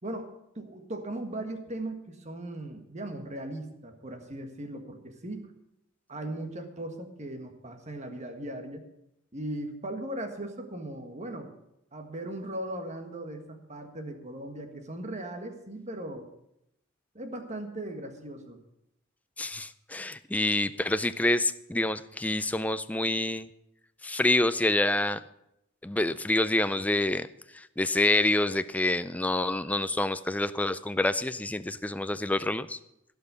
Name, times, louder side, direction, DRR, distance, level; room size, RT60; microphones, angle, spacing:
voice 1, 0.0-5.5 6.1-8.9 9.3-11.5 11.9-16.3 17.1-18.6, right 1 dB, 30° right, 5 dB, 1.5 m, -38 dB
voice 2, 19.4-23.5 24.0-25.2 25.8-27.3 27.5-32.8, left 2 dB, 5° left, 12 dB, 0.4 m, -27 dB
16.0 x 5.6 x 8.1 m, 0.82 s
head